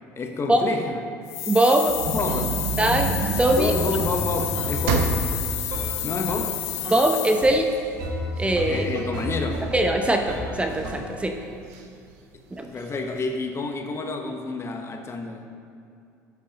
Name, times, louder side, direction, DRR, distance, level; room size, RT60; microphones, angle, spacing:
voice 1, 0.2-1.0 2.1-2.6 3.5-5.2 6.0-6.6 8.7-9.7 12.7-15.5, left 3 dB, 30° left, 4 dB, 1.1 m, -29 dB
sound 1, 1.3-7.7, left 13 dB, 75° left, 0.6 m, -31 dB
voice 2, 1.5-1.9 2.8-3.1 3.4-3.7 6.9-7.7 8.4-8.9 9.7-11.3 12.6-12.7, right 1 dB, 15° right, 4 dB, 0.8 m, -21 dB
sound 2, 1.9-7.1 7.5-7.6 8.0-10.0 10.6-11.1 11.7-11.8 12.1-12.2 12.7-13.3, right 5 dB, 75° right, 0.9 m, -30 dB
sound 3, 2.3-2.5 2.8-6.6 6.8-7.6 8.0-11.2, equal, 55° right, 1.9 m, -32 dB
11.5 x 8.3 x 3.0 m, 2.5 s
hypercardioid pair, 65°, 8 cm